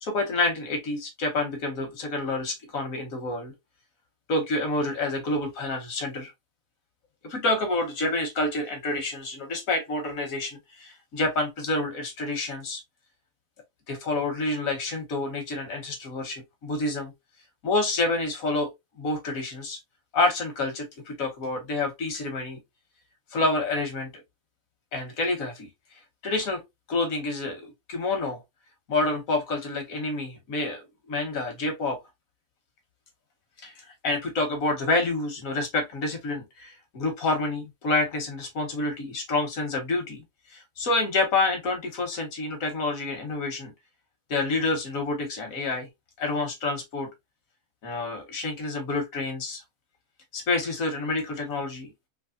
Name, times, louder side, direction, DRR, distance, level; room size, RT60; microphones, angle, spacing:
voice 1, 0.0-3.5 4.3-6.3 7.2-12.8 13.9-17.1 17.6-18.7 19.0-19.8 20.1-22.6 23.3-24.1 24.9-25.7 26.2-26.6 26.9-28.4 28.9-32.0 33.6-40.2 40.5-43.7 44.3-45.9 46.2-47.1 47.8-49.6 50.3-51.9, left 2 dB, 85° left, 1.5 m, -28 dB
3.4 x 3.1 x 2.4 m
omnidirectional pair, 1.4 m